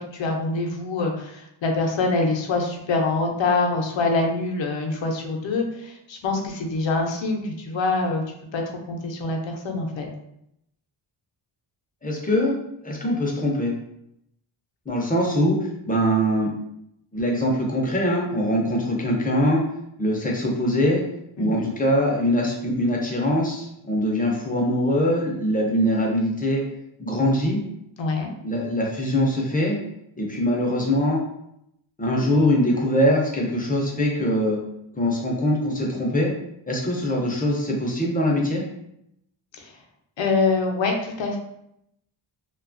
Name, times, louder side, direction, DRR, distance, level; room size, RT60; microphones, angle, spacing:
voice 1, 0.1-8.2 8.5-10.1 21.4-21.7 28.0-28.3 39.5-39.7 40.2-41.4, left 3 dB, 65° left, 2 dB, 0.6 m, -25 dB
voice 2, 12.0-12.6 12.8-13.7 14.9-16.5 17.1-19.6 20.0-21.0 21.4-26.6 27.0-27.6 28.4-29.8 30.2-31.2 32.0-34.6 34.9-36.3 36.7-38.6, equal, 20° left, -2 dB, 0.4 m, -22 dB
2.7 x 2.3 x 2.5 m, 0.79 s
wide cardioid pair, 140°, 49 cm